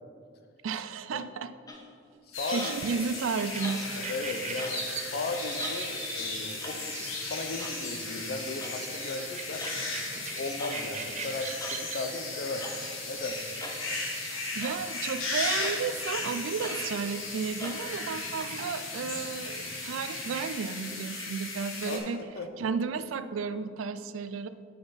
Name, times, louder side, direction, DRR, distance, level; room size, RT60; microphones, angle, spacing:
voice 1, 0.6-1.5 2.5-3.8 14.5-22.2 22.6-24.5, right 5 dB, 75° right, 13 dB, 0.4 m, -33 dB
sound 1, 1.7-2.0 2.6-3.0 3.6-4.0 4.6-4.8 5.6-5.9 6.6-6.8 7.6-7.8 8.6-8.8 9.6-9.8 10.6-10.8 11.6-11.8 12.6-12.8 13.6-13.8 14.6-14.8 15.6-15.8 16.6-16.9 17.6-17.8, left 1 dB, 20° left, 0.7 m, -41 dB
sound 2, 2.3-22.0, left 3 dB, 80° left, 1.5 m, -36 dB
voice 2, 2.3-3.0 4.0-9.7 10.3-12.7 13.1-13.5 21.9-22.7, left 2 dB, 50° left, 7 dB, 0.6 m, -36 dB
sound 3, 3.4-20.5, right 5 dB, 35° right, 0.6 m, -44 dB
7.8 x 6.9 x 4.0 m, 2.4 s
head